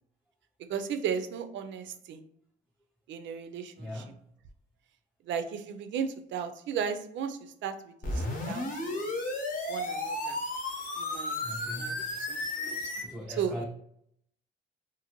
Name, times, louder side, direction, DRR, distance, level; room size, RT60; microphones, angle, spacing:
voice 1, 0.7-2.2 3.1-3.9 5.3-9.1 9.7-10.4 11.0-11.3 11.7-12.0 12.3-12.8 13.4-13.6, right 7 dB, 70° right, 8 dB, 0.4 m, -35 dB
voice 2, 3.8-4.3 11.4-12.3 12.5-13.6, equal, 5° left, -2 dB, 0.4 m, -41 dB
sound 1, 8.0-13.0, left 2 dB, 45° left, 0.8 m, -33 dB
2.5 x 2.5 x 2.9 m, 0.70 s
cardioid pair, 90°, 20 cm